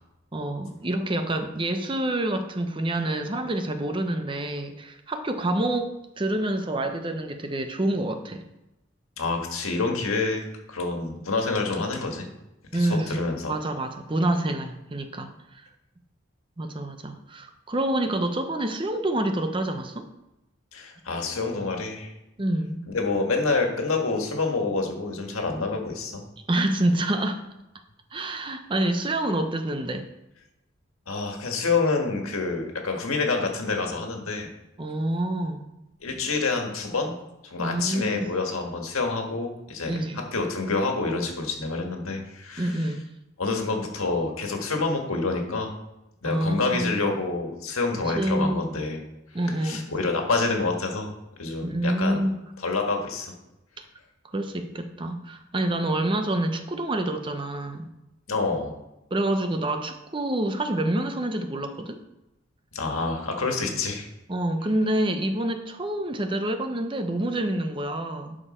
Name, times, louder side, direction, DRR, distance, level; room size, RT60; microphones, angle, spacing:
voice 1, 0.3-8.4 12.7-13.2 13.5-15.6 16.6-20.1 22.4-22.8 26.5-27.4 28.1-30.1 34.8-35.6 37.6-38.3 39.9-40.2 42.6-43.1 46.2-46.9 47.9-48.8 49.3-49.9 51.6-52.4 54.3-57.9 59.1-62.0 63.6-63.7 64.3-68.4, right 1 dB, 25° right, 7 dB, 0.6 m, -27 dB
voice 2, 9.2-12.3 12.7-13.6 20.7-22.1 22.9-26.2 31.1-34.5 36.0-37.1 37.4-42.9 43.4-45.7 46.2-49.0 49.5-51.1 51.4-52.2 52.6-53.3 58.3-58.7 62.7-64.1, left 3 dB, 90° left, 2 dB, 1.7 m, -27 dB
11.5 x 5.0 x 4.3 m, 0.94 s
head